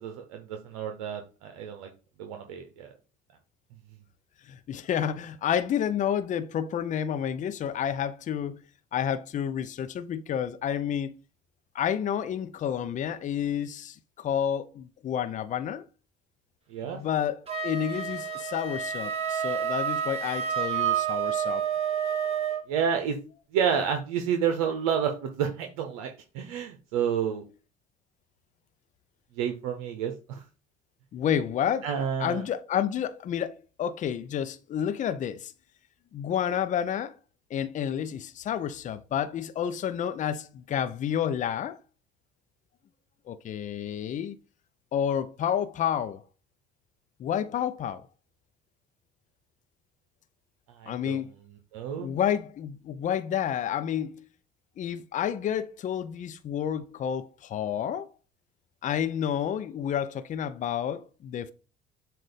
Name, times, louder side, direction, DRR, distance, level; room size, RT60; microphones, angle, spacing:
voice 1, 0.0-1.9 2.2-2.9 16.7-17.0 22.7-23.2 23.5-27.4 29.4-30.4 31.8-32.4 50.8-51.2 51.7-52.1, right 7 dB, 85° right, 0.8 m, -30 dB
voice 2, 4.5-8.6 8.9-11.1 11.7-15.8 16.8-21.6 31.1-31.9 32.2-35.5 36.1-37.1 37.5-41.8 43.3-44.4 44.9-46.2 47.2-48.0 50.9-51.3 52.0-54.2 54.8-58.1 58.8-61.5, left 9 dB, 45° left, 0.7 m, -30 dB
Wind instrument woodwind instrument, 17.5-22.7, right 8 dB, 35° right, 1.9 m, -29 dB
7.6 x 2.6 x 5.1 m
supercardioid pair, 75°, 18 cm